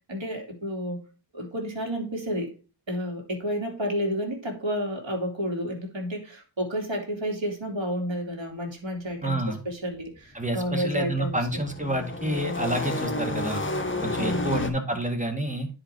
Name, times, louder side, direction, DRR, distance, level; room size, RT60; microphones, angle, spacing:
voice 1, 0.1-1.0 1.3-2.5 2.9-11.6 14.1-14.7, equal, 65° right, 0 dB, 2.9 m, -31 dB
voice 2, 9.2-9.6 10.3-13.6 14.0-15.7, right 1 dB, 15° right, 5 dB, 1.9 m, -28 dB
sound 1, 11.2-14.7, left 2 dB, 25° left, 1.3 m, -31 dB
9.9 x 5.0 x 4.6 m, 0.34 s
wide cardioid pair, 45°, 48 cm